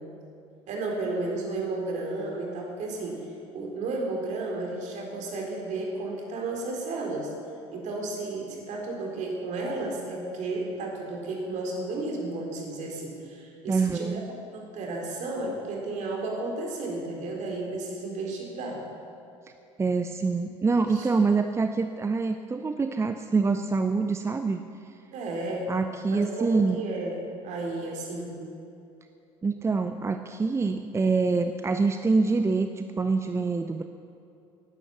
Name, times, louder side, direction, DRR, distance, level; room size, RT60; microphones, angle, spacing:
voice 1, 0.7-3.2 3.5-7.3 7.7-14.2 14.5-18.8 20.9-21.1 25.1-25.7 26.1-27.2 27.4-28.3, right 2 dB, 45° right, 0 dB, 4.0 m, -33 dB
voice 2, 13.7-14.2 19.8-24.6 25.7-26.8 29.4-33.8, right 4 dB, 15° right, 8 dB, 0.7 m, -25 dB
17.5 x 11.5 x 7.0 m, 2.7 s
figure-of-eight pair, 60°, 16 cm